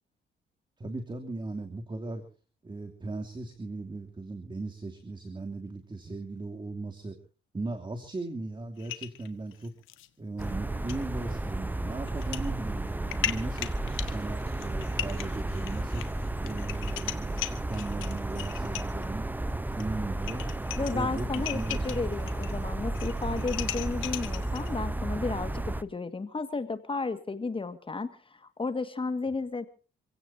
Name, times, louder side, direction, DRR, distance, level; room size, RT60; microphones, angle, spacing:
voice 1, 0.8-2.2 2.6-7.2 7.5-9.7 10.2-13.8 14.0-16.0 16.4-19.3 19.7-20.5 20.8-22.0, right 2 dB, 25° right, 5 dB, 2.9 m, -37 dB
sound 1, 8.8-10.1 10.4-10.5 10.9-11.0 12.1-12.5 12.8-19.0 19.8-19.9 20.1-22.5 22.8-24.7, left 13 dB, 85° left, 1.5 m, -38 dB
sound 2, 10.4-25.8, right 2 dB, 10° right, 0.8 m, -33 dB
voice 2, 20.8-29.7, left 3 dB, 25° left, 10 dB, 1.8 m, -33 dB
28.0 x 16.5 x 2.8 m, 0.37 s
cardioid pair, 90°, 20 cm